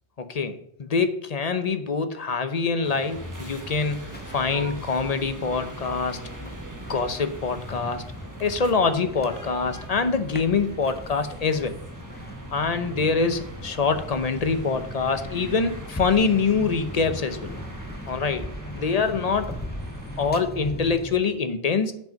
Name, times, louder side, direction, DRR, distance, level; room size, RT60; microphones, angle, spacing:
voice 1, 0.2-6.5 6.9-8.0 8.4-11.7 12.5-17.5 18.1-18.5 18.7-19.5 20.2-21.9, left 4 dB, 40° left, 9 dB, 0.8 m, -25 dB
sound 1, 2.8-20.3, right 2 dB, 20° right, 1.1 m, -42 dB
sound 2, 3.1-21.2, left 1 dB, 15° left, 0.3 m, -39 dB
7.8 x 5.7 x 5.1 m, 0.71 s
omnidirectional pair, 1.1 m